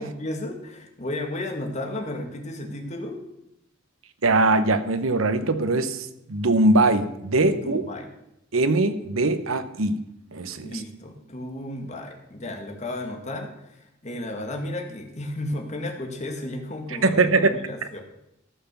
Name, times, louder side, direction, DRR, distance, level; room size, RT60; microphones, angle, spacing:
voice 1, 0.0-3.2 7.5-8.1 10.6-18.0, left 1 dB, 35° left, 3 dB, 1.9 m, -33 dB
voice 2, 4.2-7.8 8.5-10.0 10.3-10.7 17.0-17.6, right 2 dB, 90° right, 11 dB, 0.9 m, -21 dB
14.0 x 5.8 x 6.9 m, 0.84 s
head